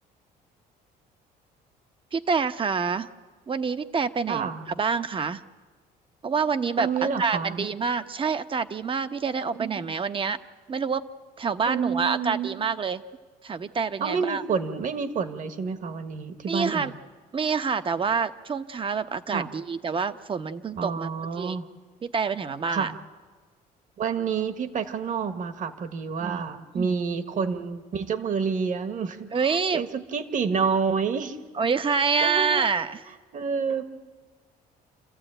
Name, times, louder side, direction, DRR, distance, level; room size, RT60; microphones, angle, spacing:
voice 1, 2.1-3.1 3.5-4.5 4.8-5.4 6.2-6.9 7.2-10.4 10.7-11.0 11.4-13.0 13.4-14.4 16.5-16.9 17.3-21.1 21.4-21.6 22.0-22.9 26.2-26.4 26.7-26.9 29.3-29.8 31.6-33.0, right 5 dB, 30° right, 11 dB, 0.9 m, -27 dB
voice 2, 4.3-4.6 6.8-7.7 9.5-9.9 11.7-12.6 14.0-16.9 19.3-19.5 20.8-21.7 22.7-23.0 24.0-31.4 32.2-32.8 33.3-33.8, right 5 dB, 50° right, 9 dB, 1.6 m, -29 dB
27.5 x 14.5 x 9.0 m, 1.4 s
cardioid pair, 110°, 17 cm